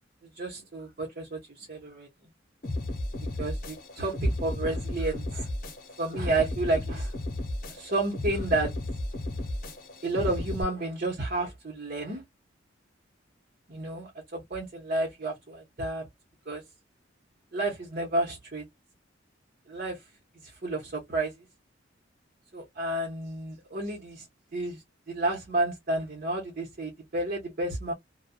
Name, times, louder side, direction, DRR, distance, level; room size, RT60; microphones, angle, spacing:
voice 1, 0.3-2.1 3.4-5.5 6.0-7.1 7.7-8.7 10.0-12.2 13.7-16.1 16.5-16.6 17.5-18.7 19.7-20.0 20.6-21.3 22.5-24.2 24.5-24.8 25.1-27.9, right 2 dB, 50° right, 0.9 m, -31 dB
sound 1, 2.6-10.6, left 1 dB, 50° left, 1.0 m, -34 dB
2.7 x 2.2 x 2.2 m
head